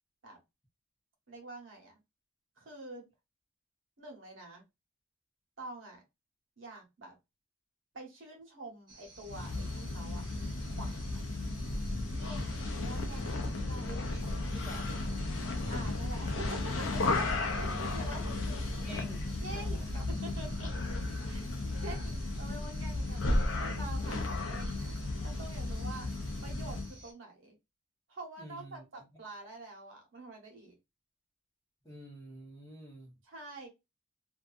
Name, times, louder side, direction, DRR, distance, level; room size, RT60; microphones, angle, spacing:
voice 1, 1.3-1.9 2.6-3.1 4.0-4.6 5.6-6.0 6.6-7.1 7.9-10.3 10.8-11.3 12.1-13.9 15.7-17.0 17.6-18.9 19.4-19.8 20.1-20.7 21.2-26.1 26.4-27.5 28.1-30.7 33.2-33.7, right 2 dB, 70° right, 1.0 m, -47 dB
sound 1, 8.9-27.1, right 2 dB, 20° right, 1.1 m, -55 dB
sound 2, 9.2-27.0, left 2 dB, 70° left, 0.5 m, -34 dB
voice 2, 13.8-15.1 17.5-18.1 18.8-20.0 28.4-28.8 31.8-33.1, equal, 15° left, 0.9 m, -48 dB
2.6 x 2.4 x 2.3 m
head